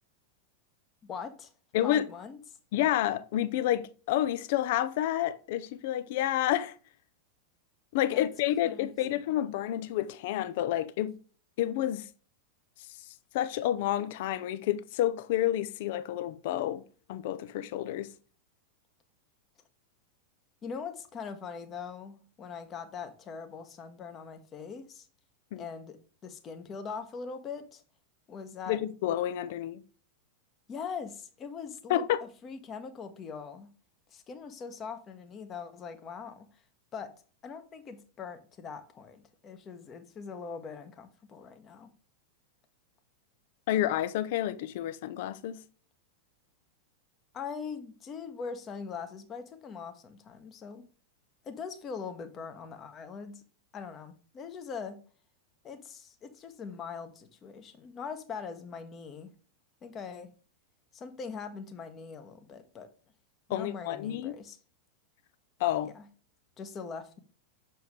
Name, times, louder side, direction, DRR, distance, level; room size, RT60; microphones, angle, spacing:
voice 1, 1.0-1.5 1.8-2.4 8.1-8.3 8.6-8.9 20.6-25.1 25.6-27.8 28.3-28.8 30.7-33.7 34.1-36.5 36.9-37.1 37.4-41.9 47.3-50.9 51.4-53.4 53.7-55.0 55.6-59.3 59.8-60.3 60.9-62.9 63.5-64.6 65.8-66.0 66.6-67.2, left 5 dB, 25° left, 1.0 m, -42 dB
voice 2, 1.7-2.1 2.7-6.8 7.9-11.2 11.6-12.1 13.3-18.1 25.5-25.6 28.7-29.8 31.9-32.3 43.7-45.6 63.5-64.3 65.6-65.9, left 12 dB, 50° left, 0.5 m, -29 dB
6.9 x 4.6 x 3.2 m
figure-of-eight pair, 90°, 0 cm